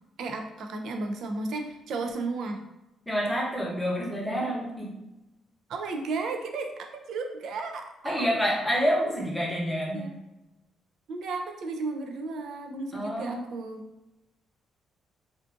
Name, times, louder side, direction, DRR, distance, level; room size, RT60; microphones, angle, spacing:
voice 1, 0.2-2.6 5.7-8.3 9.9-10.1 11.1-13.8, right 3 dB, 75° right, 4 dB, 0.3 m, -34 dB
voice 2, 3.1-4.9 8.0-10.0 12.9-13.4, equal, 5° left, -4 dB, 0.8 m, -28 dB
2.5 x 2.4 x 2.4 m, 0.95 s
cardioid pair, 90°, 0 cm